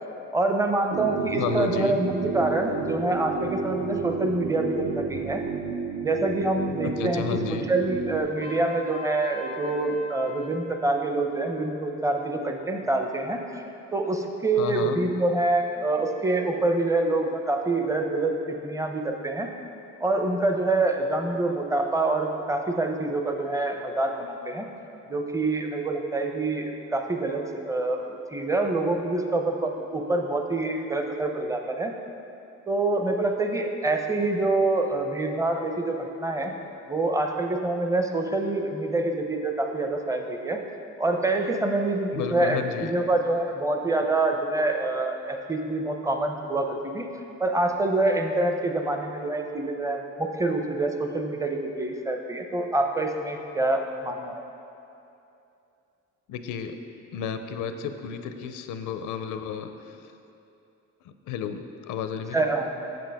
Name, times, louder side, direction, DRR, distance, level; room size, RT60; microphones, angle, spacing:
voice 1, 0.3-5.4 6.0-7.2 7.5-13.6 13.9-19.5 20.0-24.7 25.1-31.9 32.7-36.5 36.9-40.6 41.0-47.1 47.4-54.4 62.3-62.8, right 2 dB, 10° right, 4 dB, 0.6 m, -26 dB
sound 1, 0.9-8.2, right 5 dB, 75° right, 0.7 m, -31 dB
voice 2, 1.3-2.0 6.8-7.7 14.6-15.0 42.1-42.9 56.3-56.8 57.1-60.0 61.3-62.5, left 7 dB, 90° left, 8 dB, 0.5 m, -32 dB
Trumpet, 8.4-10.7, left 2 dB, 30° right, 0.9 m, -40 dB
7.7 x 7.3 x 3.5 m, 2.8 s
cardioid pair, 90°, 30 cm